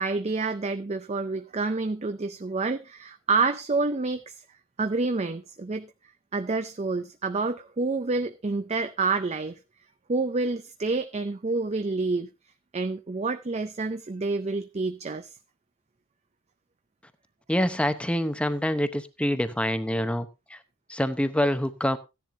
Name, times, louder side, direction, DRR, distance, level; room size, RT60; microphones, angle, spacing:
voice 1, 0.0-4.3 4.8-5.9 6.3-9.5 10.1-12.3 12.7-15.3, right 3 dB, 30° right, 0.5 m, -28 dB
voice 2, 17.5-20.6 20.9-22.0, equal, 5° left, 0.8 m, -26 dB
15.0 x 10.5 x 2.7 m
head